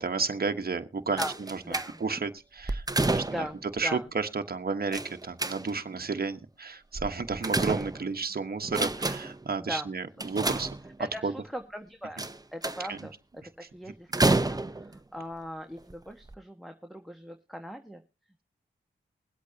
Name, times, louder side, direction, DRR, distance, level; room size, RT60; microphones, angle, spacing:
voice 1, 0.0-10.7 11.2-11.3 12.9-13.1, right 4 dB, 50° right, 1.3 m, -32 dB
sound 1, 1.2-2.2 2.6-3.6 4.9-5.9 7.0-8.2 8.6-9.4 10.2-11.2 12.2-13.0 14.1-15.0 15.8-15.9 16.3-16.4, right 2 dB, 20° right, 0.8 m, -29 dB
voice 2, 1.6-2.0 3.3-3.6 3.8-4.1 9.6-9.9 11.0-13.4 13.7-18.0, equal, ahead, 1.5 m, -39 dB
22.0 x 8.3 x 2.8 m
cardioid pair, 40°, 21 cm